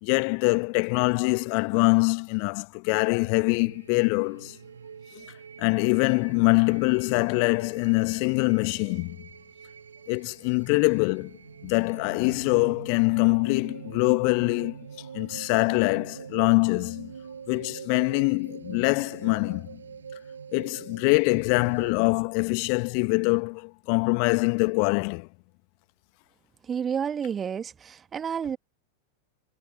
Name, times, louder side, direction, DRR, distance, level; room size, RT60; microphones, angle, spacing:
voice 1, 0.0-4.6 5.6-9.2 10.1-11.4 11.6-14.8 15.1-17.1 17.5-19.8 20.5-25.3, left 40 dB or more, 45° left, 1.4 m, -24 dB
sound 1, 3.1-21.9, right 6 dB, 70° right, 7.3 m, -44 dB
voice 2, 26.7-28.6, right 7 dB, 20° right, 1.8 m, -30 dB
figure-of-eight pair, 90°, 0 cm